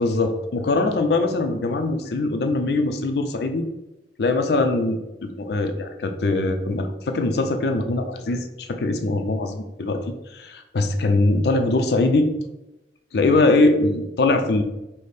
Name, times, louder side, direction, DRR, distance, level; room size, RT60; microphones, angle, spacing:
voice 1, 0.0-3.6 4.2-10.0 10.3-12.3 13.1-14.6, left 2 dB, 65° left, 7 dB, 0.4 m, -22 dB
4.9 x 2.1 x 4.1 m, 0.96 s
head